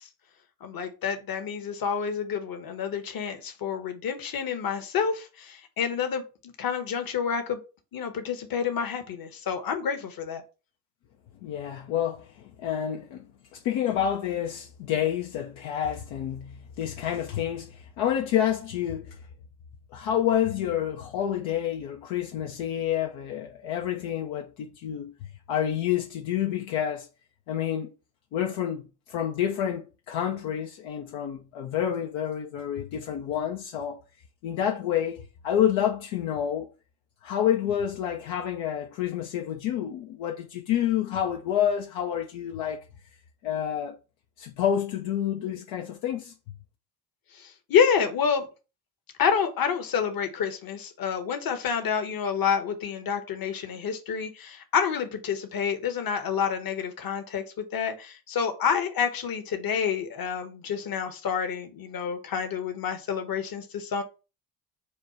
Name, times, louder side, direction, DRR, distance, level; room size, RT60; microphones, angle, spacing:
voice 1, 0.6-7.6 7.9-10.4 47.3-48.4 49.2-64.0, left 7 dB, 45° left, 1.1 m, -28 dB
voice 2, 11.4-13.2 13.5-19.2 19.9-27.1 27.5-27.9 28.3-34.0 34.4-36.7 37.2-42.8 43.4-44.0 44.4-46.6, left 10 dB, 70° left, 0.7 m, -29 dB
4.3 x 2.2 x 4.3 m
hypercardioid pair, 55°, 49 cm